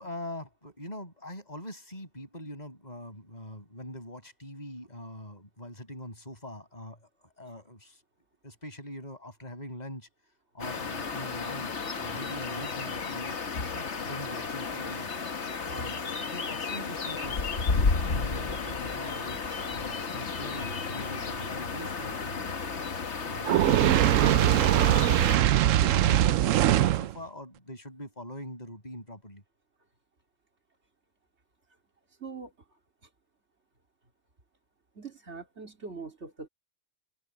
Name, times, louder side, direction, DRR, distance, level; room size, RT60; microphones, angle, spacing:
voice 1, 0.0-8.0 8.4-10.1 10.5-13.4 13.7-15.1 15.7-22.6 23.2-24.5 24.8-29.4, left 1 dB, 35° left, 7.7 m, -43 dB
sound 1, 10.6-25.4, left 4 dB, 65° left, 1.7 m, -33 dB
Fire, 23.4-27.1, right 13 dB, 85° right, 1.0 m, -22 dB
voice 2, 32.2-32.5 34.9-36.5, right 4 dB, 60° right, 3.4 m, -42 dB
omnidirectional pair, 1.3 m